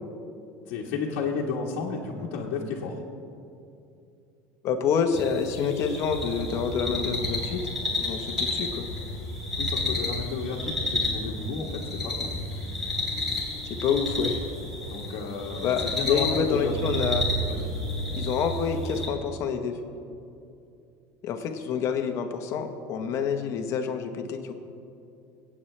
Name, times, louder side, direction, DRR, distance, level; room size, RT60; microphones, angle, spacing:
voice 1, 0.7-2.9 9.6-12.3 14.9-16.7 17.5-17.7, left 5 dB, 65° left, -4 dB, 1.3 m, -32 dB
voice 2, 4.6-7.6 8.0-8.9 13.6-14.4 15.6-17.3 18.1-19.7 21.2-24.5, left 6 dB, 40° left, 6 dB, 1.0 m, -27 dB
sound 1, 5.1-19.1, left 1 dB, ahead, 3.4 m, -31 dB
26.0 x 8.6 x 3.3 m, 2.6 s
cardioid pair, 165°, 7 cm